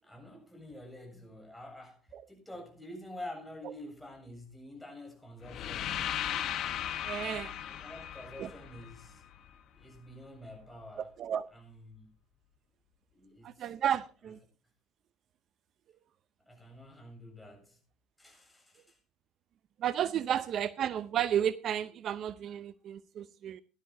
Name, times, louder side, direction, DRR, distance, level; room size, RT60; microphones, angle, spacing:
voice 1, 0.0-6.0 7.7-9.2 9.7-11.1 11.5-12.1 13.1-13.7 16.5-17.8 18.2-19.0, left 1 dB, 5° left, 7.3 m, -48 dB
sound 1, 5.4-9.5, left 10 dB, 60° left, 1.3 m, -37 dB
voice 2, 7.0-7.5 8.4-8.5 11.0-11.5 13.4-14.4 19.8-23.6, right 10 dB, 55° right, 0.6 m, -32 dB
18.0 x 12.0 x 2.7 m
supercardioid pair, 75°, 0 cm